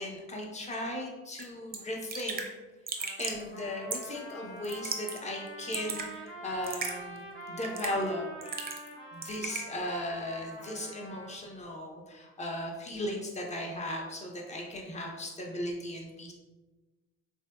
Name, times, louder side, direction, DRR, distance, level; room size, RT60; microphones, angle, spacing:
voice 1, 0.0-2.4 3.2-7.2 7.5-8.3 9.1-16.3, left 1 dB, 25° left, 0 dB, 0.7 m, -37 dB
Raindrop / Drip, 1.4-1.5 1.7-1.8 2.1-2.5 2.9-3.4 3.9-4.2 4.6-5.2 5.5-6.1 6.6-7.0 7.6-8.0 8.4-8.9 9.2-9.7, right 5 dB, 30° right, 0.5 m, -36 dB
Trumpet, 3.0-11.4, right 1 dB, 85° left, 1.2 m, -45 dB
3.5 x 2.6 x 2.2 m, 1.2 s
cardioid pair, 90°, 30 cm